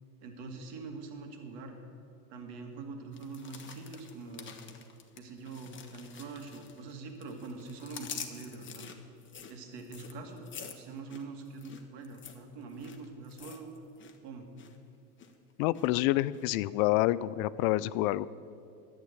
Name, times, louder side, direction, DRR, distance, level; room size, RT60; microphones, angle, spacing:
voice 1, 0.2-1.8 2.3-4.6 5.2-8.9 9.5-13.7 14.2-14.5, right 3 dB, 55° right, 3 dB, 2.1 m, -44 dB
sound 1, 3.1-6.9 7.2-14.2 14.4-14.8 15.2-15.9 16.3-16.4, left 7 dB, 25° left, 1.1 m, -47 dB
voice 2, 15.6-18.3, left 16 dB, 60° left, 18 dB, 0.5 m, -27 dB
11.0 x 8.1 x 8.2 m, 2.5 s
supercardioid pair, 110°, 49 cm